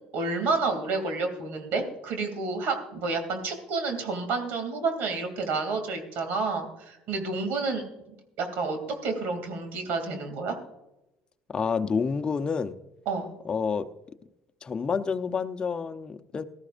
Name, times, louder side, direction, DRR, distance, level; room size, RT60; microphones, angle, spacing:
voice 1, 0.1-7.9 8.4-10.6 13.1-13.3, right 3 dB, 65° right, 6 dB, 2.8 m, -30 dB
voice 2, 11.5-12.8 13.4-13.9 14.6-16.4, left 5 dB, 25° left, 8 dB, 0.8 m, -28 dB
18.0 x 13.5 x 2.6 m, 0.93 s
supercardioid pair, 105°, 3 cm